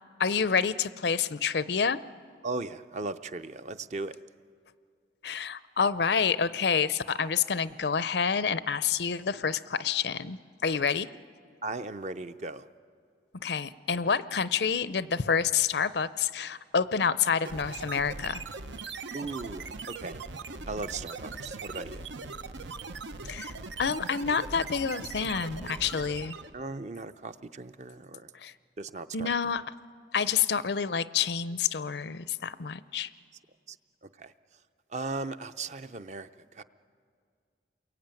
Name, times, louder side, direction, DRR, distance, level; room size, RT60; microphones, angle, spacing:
voice 1, 0.2-2.0 5.2-11.1 13.4-18.4 23.2-23.5 23.8-26.4 28.3-28.5 29.1-29.6 30.1-33.1, left 6 dB, 70° left, 16 dB, 0.6 m, -28 dB
voice 2, 2.4-4.2 11.6-12.7 19.1-20.2 20.7-22.1 26.5-28.3 28.8-29.3 33.7-33.8 34.2-34.3 34.9-36.6, right 3 dB, 40° right, 11 dB, 0.6 m, -37 dB
sound 1, 17.4-26.6, right 4 dB, 90° right, 0.9 m, -40 dB
29.0 x 22.5 x 9.0 m, 2.2 s
head